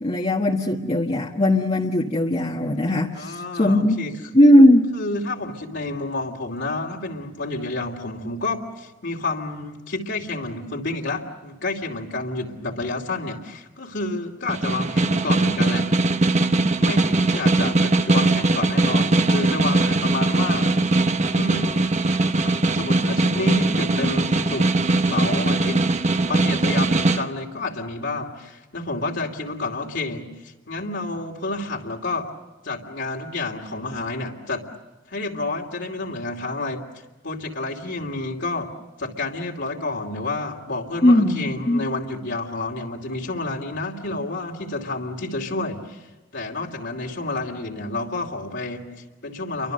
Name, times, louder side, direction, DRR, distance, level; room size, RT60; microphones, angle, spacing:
voice 1, 0.0-4.0 4.3-4.9 41.0-41.8, left 1 dB, 30° left, -2 dB, 1.5 m, -18 dB
voice 2, 3.1-4.1 4.9-15.9 16.8-20.7 21.3-21.9 22.4-24.8 25.1-25.8 26.2-32.3 32.6-34.7 35.1-36.9 37.2-38.7 39.0-49.7, left 2 dB, 65° left, -1 dB, 2.7 m, -30 dB
Snare drum, 14.5-27.2, right 2 dB, 35° right, 1.0 m, -20 dB
30.0 x 24.0 x 6.7 m, 1.2 s
head